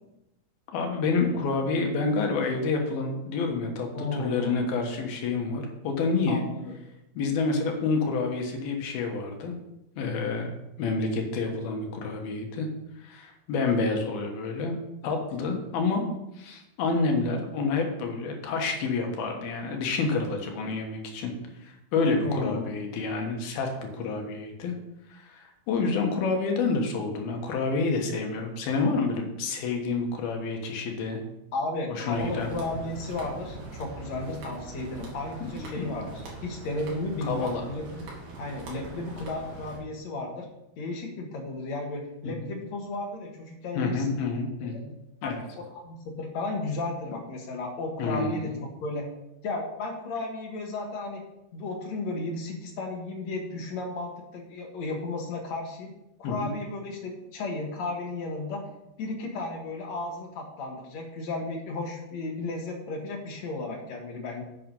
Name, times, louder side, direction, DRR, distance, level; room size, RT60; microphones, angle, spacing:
voice 1, 0.7-6.4 7.2-9.5 10.0-10.5 10.8-12.7 13.0-16.0 16.4-21.3 21.6-24.7 25.1-31.2 31.9-32.5 35.6-35.9 37.2-37.7 42.2-42.5 43.7-44.9 45.2-45.4 48.0-48.5 56.2-56.5, left 4 dB, 75° left, 3 dB, 3.2 m, -28 dB
voice 2, 3.9-4.6 6.3-6.6 22.2-22.7 31.5-38.1 38.4-40.5 40.8-44.1 44.6-44.7 45.2-45.3 45.8-49.0 49.4-51.2 51.5-55.9 56.2-58.7 59.0-64.4, left 2 dB, 55° left, 2 dB, 2.4 m, -34 dB
sound 1, 32.1-39.8, right 2 dB, 85° right, 4.2 m, -42 dB
9.0 x 7.7 x 5.4 m, 0.88 s
omnidirectional pair, 4.3 m